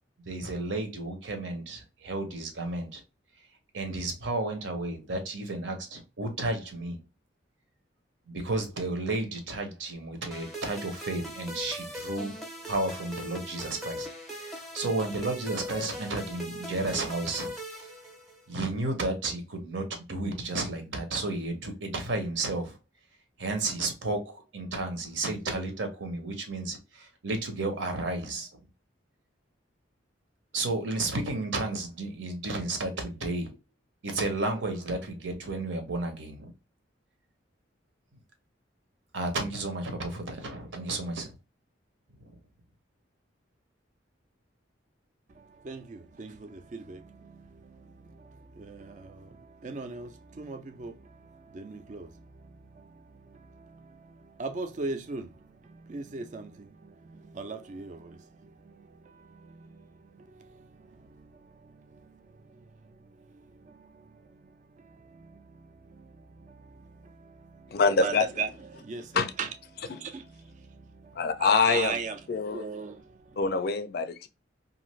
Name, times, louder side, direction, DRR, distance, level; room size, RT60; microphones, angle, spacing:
voice 1, 0.3-3.0 3.7-7.0 8.3-12.3 12.7-17.9 18.5-22.8 23.4-28.5 30.5-33.5 34.0-36.5 39.1-41.3 42.2-42.4, right 2 dB, 75° right, 0.8 m, -32 dB
sound 1, 10.3-18.6, equal, ahead, 0.6 m, -40 dB
voice 2, 45.3-73.4, right 4 dB, 40° right, 0.4 m, -41 dB
voice 3, 67.7-68.2 69.1-69.3 69.9-70.0 71.2-72.0 72.3-72.7 73.4-74.3, left 4 dB, 55° left, 0.4 m, -25 dB
2.5 x 2.4 x 3.0 m
head